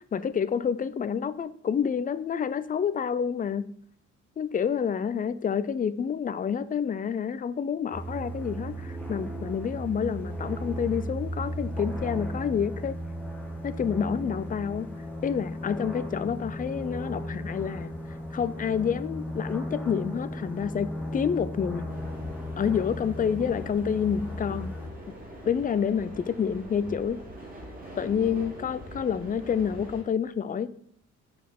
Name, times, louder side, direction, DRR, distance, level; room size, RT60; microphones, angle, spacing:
voice 1, 0.1-3.7 4.4-13.0 13.6-14.9 15.2-17.9 18.3-21.9 22.6-24.7 25.5-27.2 28.0-30.7, left 7 dB, 30° left, 14 dB, 0.4 m, -28 dB
sound 1, 7.9-24.9, equal, 5° left, 2.1 m, -36 dB
sound 2, 21.9-30.0, right 1 dB, 30° right, 2.3 m, -43 dB
5.2 x 4.3 x 5.9 m, 0.66 s
cardioid pair, 90°, 30 cm